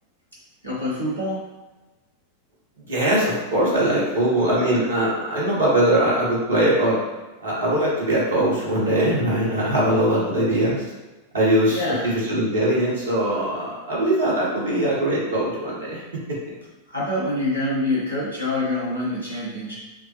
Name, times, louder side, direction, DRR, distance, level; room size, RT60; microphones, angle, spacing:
voice 1, 0.6-1.4 10.1-10.4 11.7-12.2 16.9-19.8, left 1 dB, 90° right, -7 dB, 1.5 m, -26 dB
voice 2, 2.9-7.0 7.4-10.8 11.3-16.0, right 1 dB, 70° right, -6 dB, 1.5 m, -21 dB
5.7 x 2.2 x 3.3 m, 1.1 s
figure-of-eight pair, 90°, 0 cm